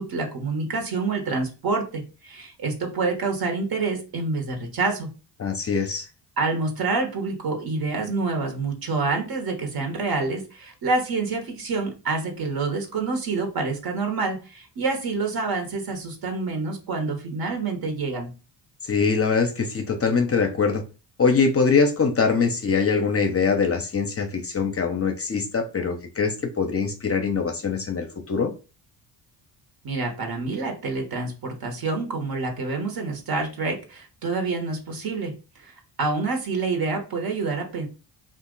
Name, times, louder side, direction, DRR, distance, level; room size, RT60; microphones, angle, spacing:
voice 1, 0.0-5.1 6.4-18.3 29.8-35.3 35.6-37.9, right 3 dB, 55° right, 1.2 m, -27 dB
voice 2, 5.4-6.1 18.8-20.8 21.2-28.5, left 5 dB, 30° left, 0.6 m, -23 dB
2.8 x 2.5 x 3.8 m
supercardioid pair, 75°, 44 cm